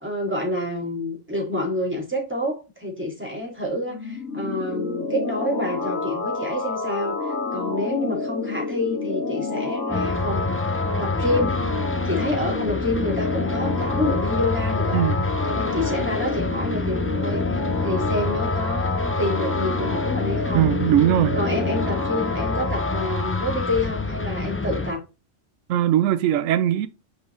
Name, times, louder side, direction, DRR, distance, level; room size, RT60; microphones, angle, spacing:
voice 1, 0.0-11.7 12.0-15.0 15.4-20.7 21.3-25.0, left 1 dB, 10° right, 2.7 m, -28 dB
sound 1, 3.9-23.8, left 3 dB, 75° left, 2.3 m, -29 dB
sound 2, 9.9-24.9, left 2 dB, 20° left, 0.3 m, -28 dB
voice 2, 14.9-15.3 20.5-21.4 25.7-26.9, right 11 dB, 80° right, 1.0 m, -20 dB
6.2 x 5.0 x 3.3 m
omnidirectional pair, 1.3 m